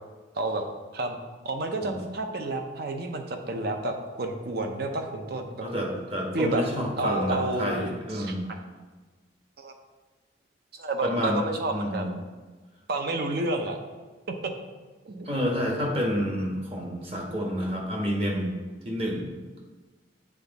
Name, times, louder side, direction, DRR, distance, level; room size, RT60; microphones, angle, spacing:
voice 1, 1.4-5.7 6.3-6.6 7.0-8.4 9.6-9.7 10.7-12.2 12.9-13.8 14.3-14.5 15.1-15.3, right 2 dB, 55° right, 5 dB, 0.7 m, -30 dB
voice 2, 5.6-8.4 11.0-12.1 15.3-18.5 18.8-19.3, equal, 30° right, -1 dB, 1.2 m, -29 dB
7.7 x 3.5 x 4.0 m, 1.3 s
head